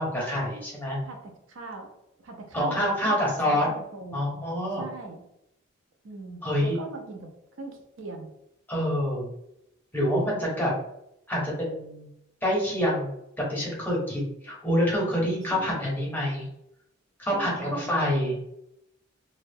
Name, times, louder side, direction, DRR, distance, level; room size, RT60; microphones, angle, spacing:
voice 1, 0.0-1.0 2.5-3.7 4.1-4.8 6.4-6.8 8.7-9.3 9.9-10.7 11.3-12.1 12.4-13.1 13.5-16.4 17.2-18.4, equal, 10° left, -4 dB, 0.7 m, -26 dB
voice 2, 1.0-1.9 2.2-3.2 3.5-4.2 4.8-5.2 6.0-7.3 7.6-8.3 15.5-15.9 17.3-17.9, right 3 dB, 75° right, 3 dB, 0.5 m, -40 dB
2.6 x 2.0 x 2.6 m, 0.80 s
head